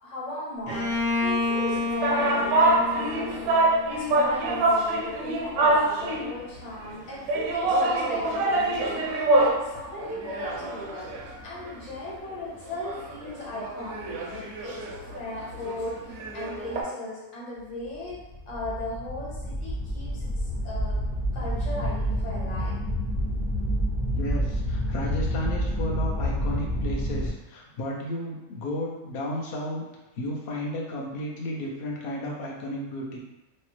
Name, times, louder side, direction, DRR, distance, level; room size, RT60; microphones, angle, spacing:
voice 1, 0.0-11.1 11.4-18.2 18.5-21.0 21.3-22.8, left 1 dB, 55° left, -6 dB, 1.2 m, -37 dB
Bowed string instrument, 0.7-4.4, left 3 dB, 40° left, 0.8 m, -29 dB
sound 1, 1.5-6.4 7.3-9.7 10.0-11.9 12.3-12.4 12.7-16.8, right 2 dB, 80° right, 1.1 m, -25 dB
sound 2, 18.1-27.3, equal, 15° left, 0.5 m, -28 dB
voice 2, 24.1-29.9 30.2-33.2, left 1 dB, 75° left, -3 dB, 0.5 m, -33 dB
3.1 x 2.0 x 3.0 m, 1.0 s
omnidirectional pair, 1.6 m